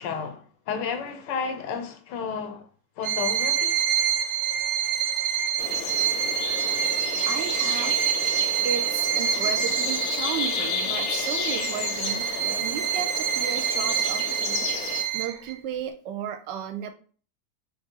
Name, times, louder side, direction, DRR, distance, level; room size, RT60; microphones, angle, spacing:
voice 1, 0.0-2.7 3.0-3.8, left 6 dB, 90° left, 1.3 m, -32 dB
Bowed string instrument, 3.0-15.5, right 9 dB, 65° right, 1.0 m, -26 dB
sound 1, 5.6-15.0, left 8 dB, 70° left, 1.0 m, -32 dB
voice 2, 7.2-16.9, right 9 dB, 85° right, 1.3 m, -34 dB
3.8 x 3.2 x 3.6 m
omnidirectional pair, 1.8 m